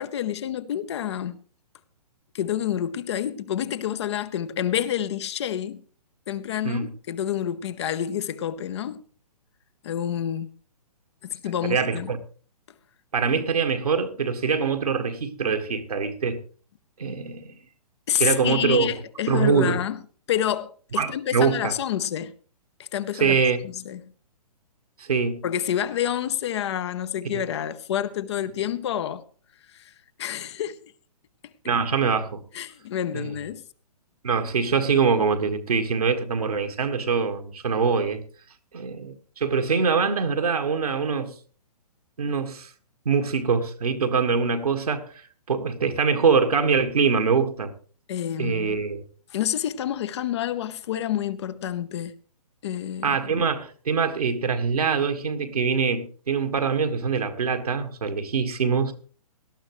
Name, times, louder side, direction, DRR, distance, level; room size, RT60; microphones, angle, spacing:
voice 1, 0.0-1.4 2.3-5.8 6.3-6.8 7.1-9.0 9.8-10.5 11.2-12.1 18.1-20.0 20.3-22.3 22.9-23.4 23.6-24.1 25.4-29.2 29.7-29.9 30.2-30.8 32.5-33.6 48.1-48.8 49.3-52.1 52.6-53.4, left 10 dB, 45° left, 0.9 m, -28 dB
voice 2, 11.6-12.2 13.1-16.4 17.0-17.5 18.2-18.9 19.3-19.8 21.0-21.7 23.2-23.6 25.0-25.4 27.3-27.4 31.6-32.4 33.1-33.3 34.2-38.2 38.7-41.3 42.2-42.7 43.0-45.1 45.5-47.7 48.4-49.0 53.0-58.9, right 5 dB, 70° right, 1.8 m, -24 dB
18.0 x 12.5 x 3.1 m
figure-of-eight pair, 125°, 20 cm